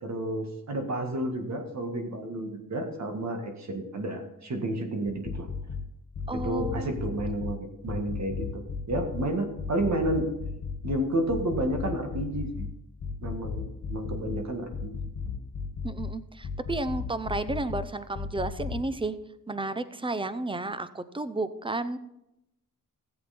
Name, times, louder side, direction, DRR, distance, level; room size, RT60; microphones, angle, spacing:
voice 1, 0.0-5.5 6.3-8.5 8.9-10.3 10.8-12.7 13.2-14.9, right 1 dB, 55° right, 4 dB, 2.0 m, -31 dB
sound 1, 5.1-5.8 6.1-7.5 7.9-9.2 9.6-11.0 11.3-12.7 13.0-14.4 14.7-16.1 16.4-17.8 18.1-18.8, left 5 dB, 55° left, 1.9 m, -34 dB
voice 2, 6.3-7.0 15.8-19.2 19.5-22.0, right 2 dB, 15° right, 13 dB, 0.6 m, -32 dB
15.0 x 7.8 x 4.3 m, 0.86 s
cardioid pair, 95°, 33 cm